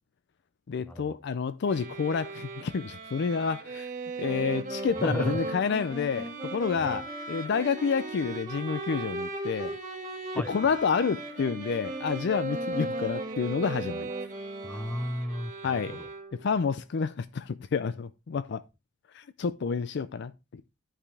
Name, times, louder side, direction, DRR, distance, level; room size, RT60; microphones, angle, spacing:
voice 1, 0.7-3.9 4.2-9.8 10.3-14.1 15.6-16.0 16.3-18.6 19.1-20.6, left 5 dB, 60° left, 0.4 m, -29 dB
sound 1, 1.7-16.6, right 3 dB, 45° right, 1.5 m, -39 dB
Wind instrument woodwind instrument, 4.2-15.1, right 1 dB, 20° right, 1.3 m, -40 dB
voice 2, 5.0-5.4 6.8-7.0 10.3-10.5 14.6-16.1, equal, 5° left, 0.5 m, -34 dB
10.0 x 5.0 x 3.4 m
head